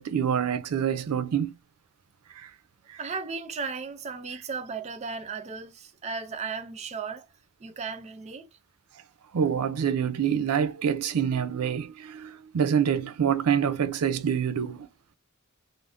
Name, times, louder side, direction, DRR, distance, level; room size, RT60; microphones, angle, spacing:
voice 1, 0.0-1.6 2.3-2.5 2.9-3.0 9.3-14.9, right 8 dB, 90° right, 0.4 m, -26 dB
voice 2, 3.0-7.3 7.6-8.5, right 5 dB, 30° right, 0.4 m, -35 dB
2.5 x 2.0 x 3.4 m
head